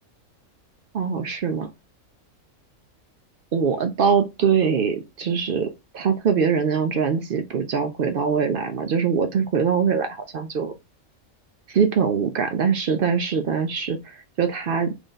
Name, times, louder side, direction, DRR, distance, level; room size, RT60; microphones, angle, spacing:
voice 1, 0.9-1.7 3.5-10.7 11.7-14.9, right 6 dB, 65° right, 0.5 m, -23 dB
3.2 x 2.5 x 3.8 m
omnidirectional pair, 1.3 m